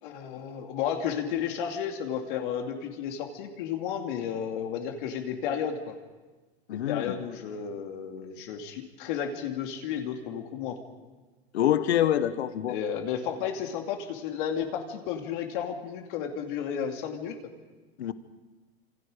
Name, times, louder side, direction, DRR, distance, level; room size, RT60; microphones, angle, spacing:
voice 1, 0.0-5.9 6.7-10.8 12.7-17.4, left 8 dB, 50° left, 3 dB, 2.6 m, -33 dB
voice 2, 6.7-7.1 11.5-12.8 18.0-18.1, left 11 dB, 85° left, 12 dB, 1.3 m, -25 dB
27.5 x 27.0 x 5.1 m, 1.3 s
supercardioid pair, 150°, 32 cm